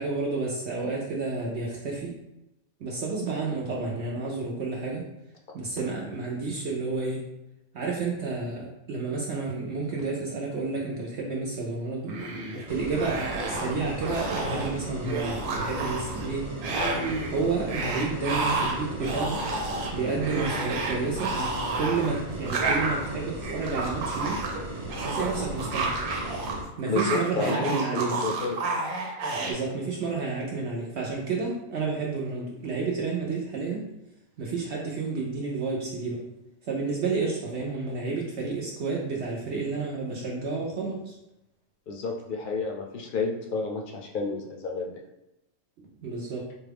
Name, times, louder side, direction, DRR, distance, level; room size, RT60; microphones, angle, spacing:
voice 1, 0.0-2.2 2.8-5.1 5.5-7.3 7.7-12.2 12.7-16.5 17.3-19.4 19.9-21.4 21.8-24.4 25.0-26.0 26.8-28.2 29.5-33.9 34.4-36.2 36.6-41.1 45.8-46.5, right 4 dB, 65° right, -3 dB, 0.8 m, -30 dB
sound 1, 12.0-12.6 12.9-13.7 14.0-14.7 15.0-16.3 16.6-17.3 17.7-26.5 26.8-29.5, right 3 dB, 80° right, 1.1 m, -30 dB
sound 2, 12.7-26.6, equal, 30° right, 0.6 m, -37 dB
voice 2, 26.9-28.6 41.9-45.0, left 3 dB, 60° left, 0 dB, 0.5 m, -30 dB
4.3 x 2.3 x 3.4 m, 0.90 s
omnidirectional pair, 1.4 m